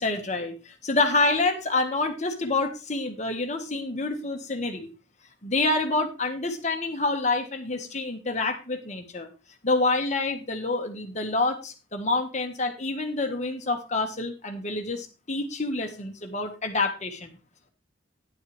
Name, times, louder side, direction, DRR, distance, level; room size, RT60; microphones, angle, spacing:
voice 1, 0.0-4.9 5.4-9.3 9.6-17.4, left 3 dB, 40° left, 5 dB, 1.7 m, -27 dB
11.0 x 10.5 x 3.4 m, 0.29 s
head